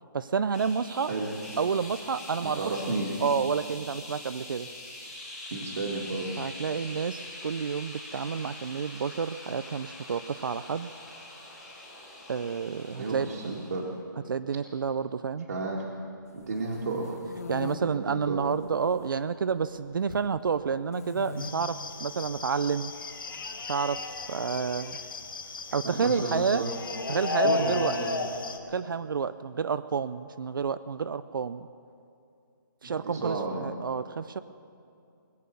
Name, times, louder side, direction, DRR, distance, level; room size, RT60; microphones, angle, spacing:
voice 1, 0.1-1.1 1.6-2.6 3.2-4.7 6.4-10.9 12.3-13.3 14.3-15.5 17.5-22.9 23.7-25.0 25.7-26.6 27.1-28.0 28.7-31.7 32.8-34.4, right 6 dB, 70° right, 13 dB, 0.5 m, -30 dB
sound 1, 0.5-13.9, left 2 dB, ahead, 2.1 m, -44 dB
voice 2, 2.4-3.2 5.5-6.5 13.0-13.9 15.5-15.9 16.3-17.2 17.7-18.4 25.8-26.7 27.3-28.2 32.8-33.7, right 3 dB, 55° right, -5 dB, 1.9 m, -32 dB
sound 2, 16.4-17.8 18.4-19.0 19.3-20.3 20.9-21.5 22.0-22.3 23.4-24.4, left 4 dB, 45° left, 1.3 m, -41 dB
sound 3, 21.4-28.6, left 4 dB, 70° left, 1.5 m, -34 dB
21.5 x 8.6 x 6.9 m, 2.6 s
hypercardioid pair, 170°, 12 cm